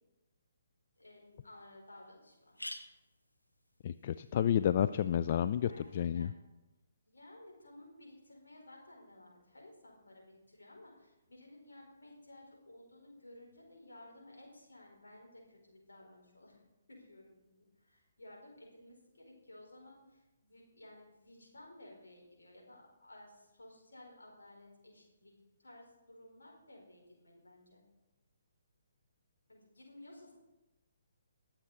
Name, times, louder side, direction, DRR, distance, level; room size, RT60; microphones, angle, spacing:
sound 1, 1.0-1.1 1.6-1.7 1.9-2.0 2.3-6.1, left 1 dB, 85° left, 1.3 m, -51 dB
voice 1, 1.0-2.6 5.7-6.4 7.0-16.6 16.9-25.3 25.6-27.8 29.5-30.3, left 1 dB, 65° left, -1 dB, 4.5 m, -56 dB
voice 2, 3.8-6.3, left 9 dB, 40° left, 11 dB, 0.3 m, -30 dB
21.0 x 7.3 x 4.1 m, 1.0 s
figure-of-eight pair, 135°, 0 cm